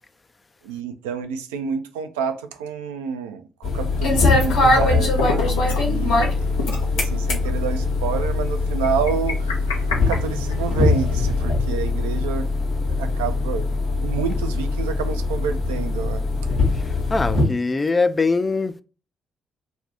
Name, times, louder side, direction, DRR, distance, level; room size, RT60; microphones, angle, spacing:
voice 1, 0.6-6.4 6.8-12.5 13.0-13.7 14.0-16.2, right 7 dB, 75° right, 0.3 m, -29 dB
sound 1, 3.6-17.5, left 3 dB, 65° left, 1.0 m, -22 dB
sound 2, 4.0-4.9 5.1-5.9 6.2-6.3 6.6-6.9 7.4-7.5 8.8-10.9, left 3 dB, 80° left, 0.6 m, -29 dB
voice 2, 16.8-18.8, left 3 dB, 25° left, 0.3 m, -22 dB
2.6 x 2.4 x 3.3 m
figure-of-eight pair, 40°, 0 cm